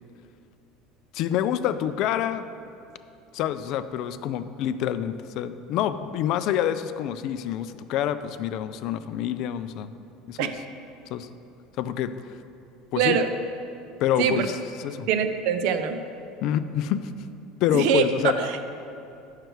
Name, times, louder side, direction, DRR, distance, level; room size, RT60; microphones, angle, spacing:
voice 1, 1.1-2.5 3.3-9.9 10.3-10.5 11.1-11.3 11.8-12.4 12.9-13.2 14.0-14.6 14.8-15.1 16.4-17.1 17.6-18.4, left 10 dB, 45° left, 12 dB, 0.3 m, -27 dB
voice 2, 13.0-13.3 14.2-14.5 15.1-16.0 17.7-18.6, right 7 dB, 60° right, 8 dB, 0.5 m, -23 dB
9.1 x 6.6 x 4.6 m, 2.7 s
cardioid pair, 170°, 0 cm